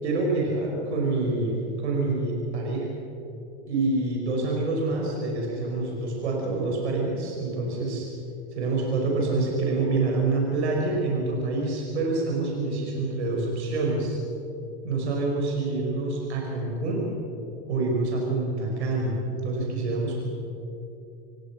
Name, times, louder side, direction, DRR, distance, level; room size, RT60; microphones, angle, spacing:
voice 1, 0.0-1.5 1.8-2.9 3.7-8.1 8.6-14.2 14.8-17.1 17.7-20.2, right 3 dB, 80° right, -1 dB, 5.9 m, -26 dB
28.0 x 18.0 x 6.1 m, 2.7 s
hypercardioid pair, 95°, 33 cm